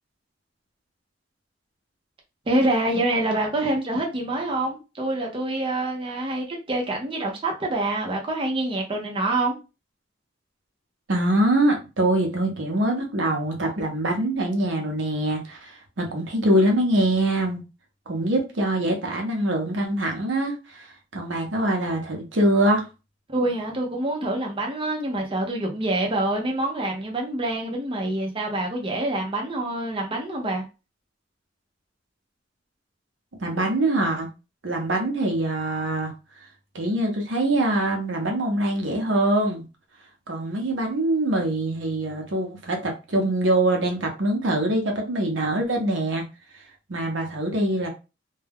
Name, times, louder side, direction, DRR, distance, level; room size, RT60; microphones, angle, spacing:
voice 1, 2.5-9.5 23.3-30.6, right 2 dB, 30° right, 0.6 m, -26 dB
voice 2, 11.1-17.6 18.1-20.9 21.1-22.8 33.4-34.3 34.6-36.1 36.7-39.6 40.3-46.2 46.9-47.9, right 1 dB, 80° right, 0.7 m, -24 dB
2.2 x 2.2 x 3.4 m
head